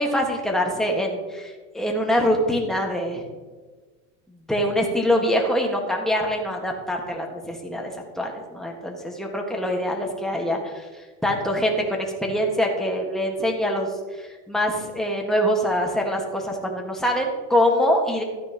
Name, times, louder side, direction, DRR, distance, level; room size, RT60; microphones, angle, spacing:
voice 1, 0.0-3.2 4.5-10.9 11.2-13.9 14.2-18.2, equal, ahead, 0 dB, 1.6 m, -24 dB
13.0 x 9.6 x 3.0 m, 1.4 s
supercardioid pair, 130°, 41 cm